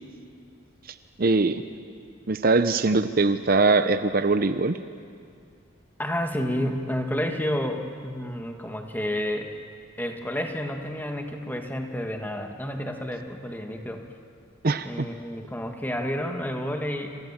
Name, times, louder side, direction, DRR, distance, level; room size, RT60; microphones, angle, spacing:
voice 1, 1.2-1.6 2.3-4.8 14.6-15.1, right 3 dB, 45° right, 10 dB, 0.7 m, -22 dB
voice 2, 6.0-9.5 10.0-14.0 14.8-17.1, equal, 10° left, 3 dB, 1.8 m, -30 dB
28.0 x 26.5 x 7.4 m, 2.3 s
head